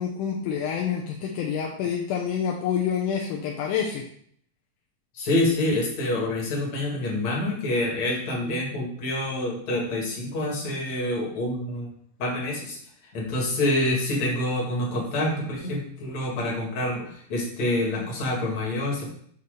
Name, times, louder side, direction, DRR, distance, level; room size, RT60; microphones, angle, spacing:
voice 1, 0.0-4.1, left 7 dB, 75° left, -1 dB, 2.0 m, -27 dB
voice 2, 5.1-11.9 12.2-12.8 13.1-19.1, left 1 dB, 50° left, -2 dB, 2.9 m, -27 dB
8.4 x 3.1 x 6.5 m, 0.62 s
omnidirectional pair, 4.2 m